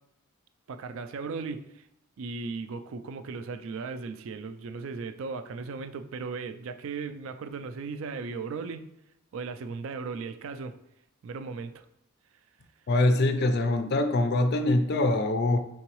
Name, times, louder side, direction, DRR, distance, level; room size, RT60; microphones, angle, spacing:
voice 1, 0.7-1.8 2.2-8.9 9.3-10.8 11.2-11.8, right 4 dB, 60° right, 9 dB, 0.3 m, -37 dB
voice 2, 12.9-15.6, left 2 dB, 45° left, 8 dB, 0.4 m, -24 dB
4.5 x 3.9 x 3.0 m, 0.85 s
head